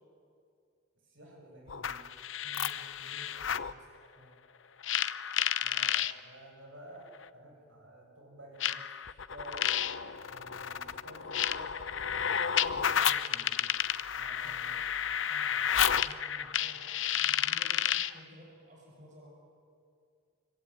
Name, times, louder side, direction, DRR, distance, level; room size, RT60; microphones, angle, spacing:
voice 1, 1.0-2.1 5.6-9.7 10.3-11.8 12.3-13.8 14.2-14.8, right 1 dB, 75° right, 1 dB, 7.9 m, -52 dB
sound 1, 1.7-3.7 4.8-6.1 7.2-7.3 8.6-18.2, left 9 dB, 75° left, 0.9 m, -31 dB
voice 2, 2.4-3.9 4.2-4.4 14.4-14.6 14.9-19.3, equal, 40° right, -1 dB, 6.0 m, -55 dB
25.5 x 25.0 x 9.2 m, 2.4 s
head